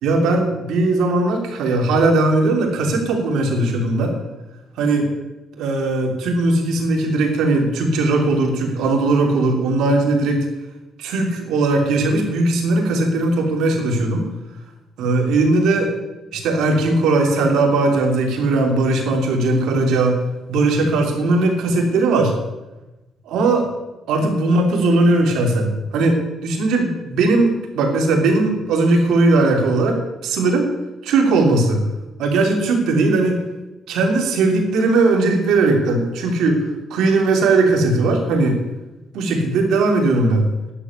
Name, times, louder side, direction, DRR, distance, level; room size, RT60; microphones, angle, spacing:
voice 1, 0.0-4.1 4.8-5.1 5.6-10.5 11.0-14.3 15.0-15.9 16.3-20.1 20.5-22.3 23.3-23.6 24.1-30.7 31.0-31.9 32.2-33.4 33.9-36.6 36.9-38.6 39.1-40.5, right 2 dB, 85° right, 2 dB, 3.0 m, -18 dB
11.0 x 7.3 x 9.6 m, 1.0 s
cardioid pair, 90°, 0 cm